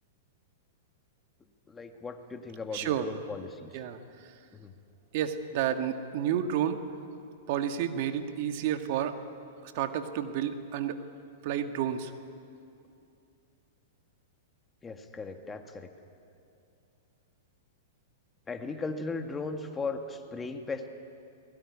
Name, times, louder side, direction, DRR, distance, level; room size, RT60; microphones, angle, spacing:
voice 1, 1.7-3.7 4.5-4.7 14.8-15.9 18.5-20.9, left 3 dB, 15° left, 6 dB, 1.9 m, -37 dB
voice 2, 2.7-3.0 3.7-4.3 5.1-6.8 7.5-9.2 9.6-11.0 11.4-12.1, right 9 dB, 55° right, 7 dB, 1.7 m, -30 dB
23.0 x 20.0 x 9.8 m, 2.5 s
hypercardioid pair, 125°, 0 cm